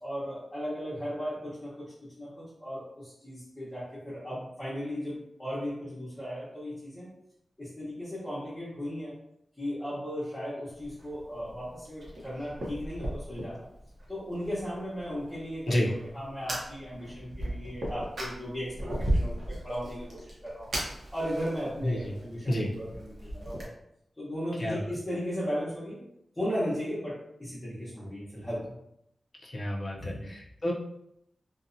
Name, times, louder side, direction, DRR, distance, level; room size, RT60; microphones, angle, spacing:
voice 1, 0.0-7.1 7.6-9.2 9.6-13.7 14.1-15.8 16.1-20.7 21.1-23.7 24.2-26.0 26.3-28.7 30.0-30.3, equal, 10° left, -11 dB, 0.9 m, -36 dB
Fire, 10.7-23.6, right 1 dB, 55° right, 0.7 m, -37 dB
voice 2, 29.4-30.7, left 1 dB, 35° left, -1 dB, 0.4 m, -30 dB
2.6 x 2.1 x 2.6 m, 0.77 s
wide cardioid pair, 165°, 0 cm